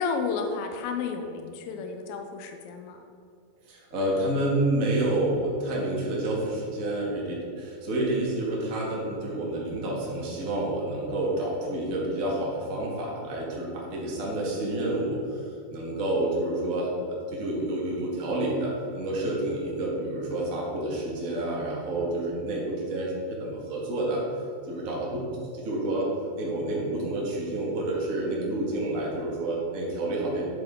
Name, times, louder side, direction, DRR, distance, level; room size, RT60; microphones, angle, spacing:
voice 1, 0.0-3.1, left 5 dB, 80° left, 5 dB, 2.4 m, -32 dB
voice 2, 3.7-15.4 15.7-24.2 24.6-25.2 25.5-26.1 26.4-30.5, right 1 dB, 40° right, -4 dB, 1.1 m, -29 dB
10.5 x 7.5 x 3.7 m, 2.5 s
omnidirectional pair, 4.4 m